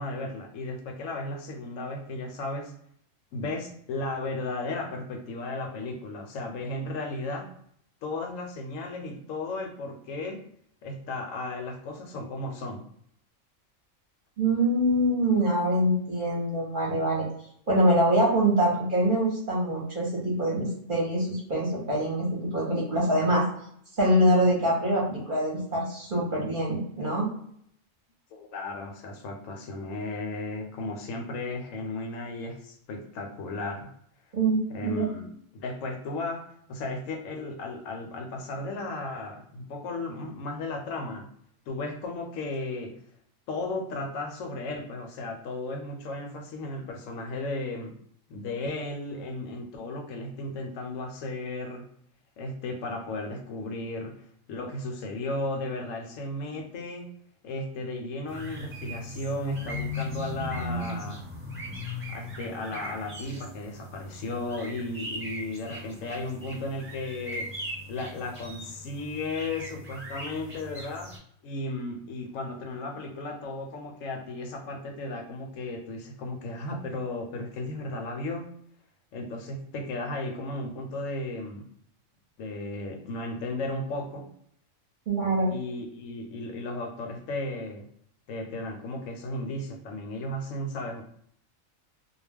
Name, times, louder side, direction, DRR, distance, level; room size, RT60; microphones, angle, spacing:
voice 1, 0.0-2.7 3.3-7.5 8.0-10.4 10.8-12.8 28.3-33.9 34.7-35.2 35.5-41.3 41.7-42.9 43.5-47.9 48.3-51.9 52.4-54.2 54.5-57.1 57.4-61.2 62.1-67.5 67.9-71.1 71.4-78.5 79.1-81.7 82.4-84.3 85.5-87.9 88.3-91.0, left 2 dB, 80° left, 3 dB, 1.0 m, -35 dB
voice 2, 14.4-17.3 17.7-23.4 24.0-27.3 34.3-35.1 85.1-85.5, right 1 dB, 45° right, -3 dB, 0.8 m, -24 dB
sound 1, 58.3-71.2, left 1 dB, 15° right, 0.6 m, -38 dB
2.3 x 2.2 x 3.3 m, 0.66 s
omnidirectional pair, 1.4 m